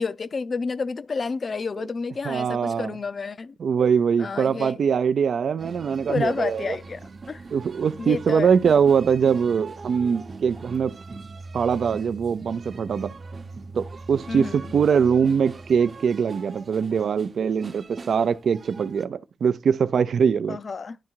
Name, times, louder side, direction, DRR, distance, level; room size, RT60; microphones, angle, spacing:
voice 1, 0.0-3.6 4.2-4.9 6.1-7.4 8.0-8.5 14.3-14.7 20.5-21.0, left 4 dB, 60° left, 0.5 m, -30 dB
voice 2, 2.3-2.9 3.6-6.6 7.5-11.0 11.5-13.1 13.8-20.6, right 6 dB, 85° right, 0.5 m, -22 dB
sound 1, 5.6-19.0, right 3 dB, 55° right, 0.8 m, -41 dB
10.5 x 3.7 x 4.5 m
cardioid pair, 75°, 0 cm